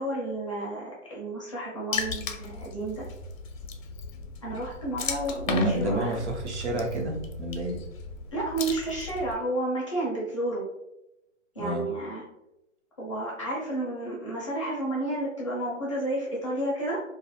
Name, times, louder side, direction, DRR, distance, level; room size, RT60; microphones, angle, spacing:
voice 1, 0.0-3.0 4.4-6.1 8.3-10.6 11.5-12.3 13.0-17.0, right 1 dB, 25° left, -5 dB, 0.4 m, -31 dB
Water / Splash splatter, 1.9-9.4, left 4 dB, 85° left, 0.5 m, -36 dB
voice 2, 5.5-7.8 11.6-11.8, right 1 dB, 60° right, 0 dB, 0.8 m, -29 dB
2.3 x 2.1 x 2.8 m, 0.87 s
hypercardioid pair, 140°, 39 cm